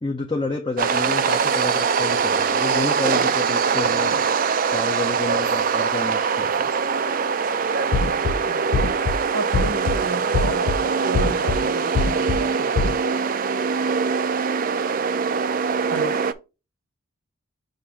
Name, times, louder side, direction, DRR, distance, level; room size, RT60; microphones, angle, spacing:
voice 1, 0.0-4.2 4.7-6.7, left 2 dB, 20° left, 0.5 m, -29 dB
sound 1, 0.8-16.3, right 5 dB, 40° right, 0.4 m, -23 dB
voice 2, 3.7-4.2 8.0-8.9 9.3-12.9 15.9-16.1, right 3 dB, 80° right, 1.0 m, -32 dB
sound 2, 7.9-8.3 8.7-9.2 9.5-10.0 10.3-10.8 11.1-11.6 12.0-12.4 12.8-13.0, left 3 dB, 90° left, 0.5 m, -22 dB
6.5 x 2.6 x 5.6 m
head